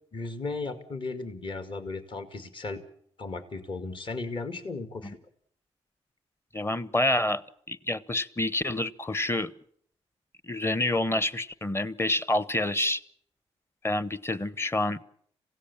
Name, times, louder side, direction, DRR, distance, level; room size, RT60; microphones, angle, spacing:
voice 1, 0.1-2.8 3.2-5.2, left 3 dB, 45° left, 8 dB, 2.3 m, -35 dB
voice 2, 6.5-7.4 7.7-9.5 10.4-13.0 13.8-15.0, left 1 dB, 20° left, 16 dB, 1.1 m, -28 dB
26.5 x 17.0 x 7.3 m, 0.67 s
cardioid pair, 60°, 12 cm